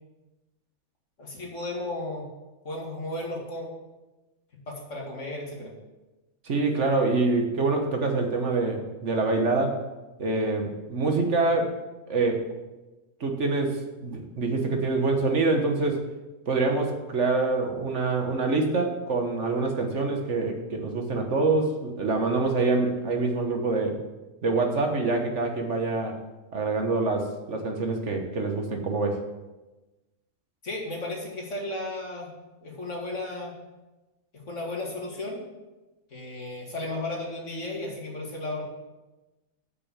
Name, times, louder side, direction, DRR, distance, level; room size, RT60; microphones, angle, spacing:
voice 1, 1.2-2.3 2.6-3.7 4.7-5.7 30.6-32.3 32.6-33.6 34.5-35.4 36.1-38.6, left 2 dB, 60° left, -2 dB, 2.6 m, -34 dB
voice 2, 6.4-9.8 10.2-11.8 12.1-12.5 13.2-16.0 16.5-24.0 24.4-26.2 26.5-29.2, right 3 dB, 60° right, 4 dB, 1.5 m, -25 dB
8.2 x 6.4 x 7.4 m, 1.1 s
omnidirectional pair, 1.5 m